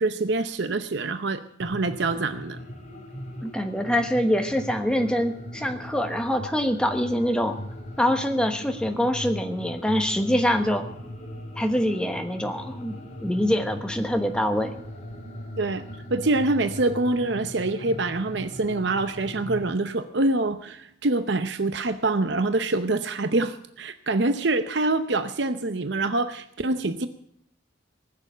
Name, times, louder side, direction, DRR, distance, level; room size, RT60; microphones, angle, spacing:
voice 1, 0.0-2.6 15.6-15.8 16.1-27.1, right 2 dB, 60° right, 10 dB, 0.7 m, -25 dB
sound 1, 1.6-19.6, left 1 dB, 35° left, 2.7 m, -39 dB
voice 2, 3.4-7.6 8.0-10.8 11.5-13.0 13.2-14.7, equal, 5° left, 5 dB, 1.2 m, -24 dB
19.0 x 7.0 x 9.1 m, 0.69 s
head